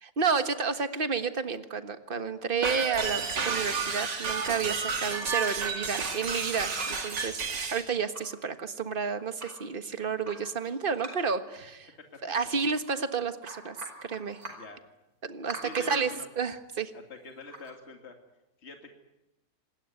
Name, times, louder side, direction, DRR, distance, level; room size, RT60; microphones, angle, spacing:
voice 1, 0.0-11.9 12.2-13.8 14.0-14.4 15.2-16.1 16.4-16.9, right 5 dB, 35° right, 10 dB, 1.6 m, -31 dB
sound 1, 2.6-7.8, right 5 dB, 90° right, 3.1 m, -31 dB
sound 2, 4.9-6.4 6.7-7.2 7.6-7.7 7.9-8.4 8.9-9.6 10.2-11.5 12.4-13.0 13.3-14.7 15.5-16.2 17.4-17.7, right 2 dB, 55° right, 5.3 m, -44 dB
voice 2, 15.6-16.3 16.9-18.2 18.6-18.9, left 3 dB, 40° left, 4 dB, 2.7 m, -44 dB
27.0 x 20.0 x 9.6 m, 0.93 s
omnidirectional pair, 1.8 m